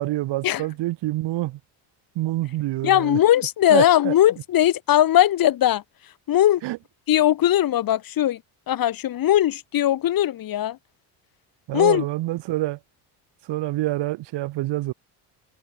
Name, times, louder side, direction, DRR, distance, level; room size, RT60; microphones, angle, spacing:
voice 1, 0.0-1.6 2.2-3.2 3.7-4.1 6.6-6.8 11.7-12.8 13.5-14.9, right 17 dB, 70° right, 3.5 m, -26 dB
voice 2, 2.8-5.8 6.3-6.6 7.1-8.4 8.7-10.8 11.7-12.0, left 12 dB, 55° left, 3.6 m, -19 dB
cardioid pair, 145°, 43 cm